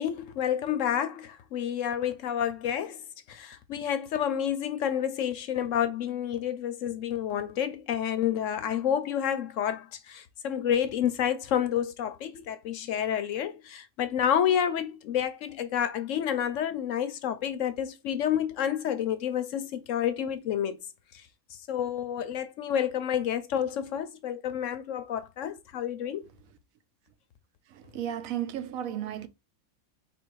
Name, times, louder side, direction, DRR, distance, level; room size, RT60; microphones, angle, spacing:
voice 1, 0.0-3.0 3.3-20.8 21.7-26.2, left 9 dB, 70° left, 0.9 m, -29 dB
voice 2, 27.7-29.3, right 10 dB, 75° right, 1.0 m, -34 dB
3.9 x 2.6 x 4.5 m
omnidirectional pair, 1.5 m